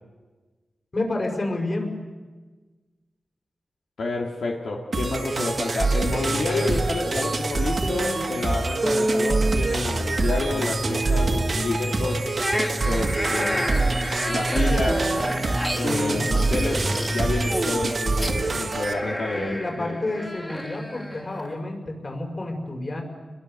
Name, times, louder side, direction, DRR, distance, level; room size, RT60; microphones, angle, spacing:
voice 1, 0.9-1.9 19.3-23.0, left 2 dB, 40° left, 2 dB, 5.5 m, -29 dB
voice 2, 4.0-12.3 12.8-13.7 14.2-15.1 15.7-20.0, left 3 dB, 85° left, -1 dB, 2.5 m, -29 dB
sound 1, 4.9-18.9, right 3 dB, 50° right, 1.8 m, -26 dB
sound 2, 6.3-6.9 7.2-12.2 12.5-18.5, right 1 dB, 15° right, 2.2 m, -30 dB
sound 3, 12.4-21.5, equal, 10° left, 2.4 m, -31 dB
29.5 x 22.0 x 6.8 m, 1.3 s
wide cardioid pair, 85°, 0 cm